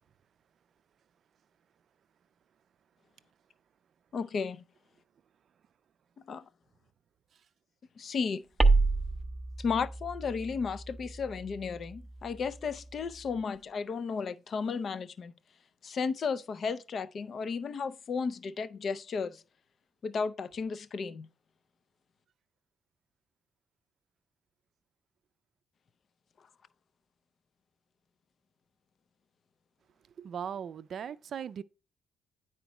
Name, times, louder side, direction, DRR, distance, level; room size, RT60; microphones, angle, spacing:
voice 1, 4.1-4.6 6.2-6.5 8.0-8.5 9.6-15.3 15.8-19.4 20.0-21.3, left 5 dB, 50° left, 0.5 m, -34 dB
sound 1, 8.6-13.4, right 3 dB, 10° right, 0.6 m, -30 dB
voice 2, 30.2-31.6, right 8 dB, 60° right, 0.4 m, -38 dB
9.3 x 4.4 x 3.0 m
cardioid pair, 90°, 0 cm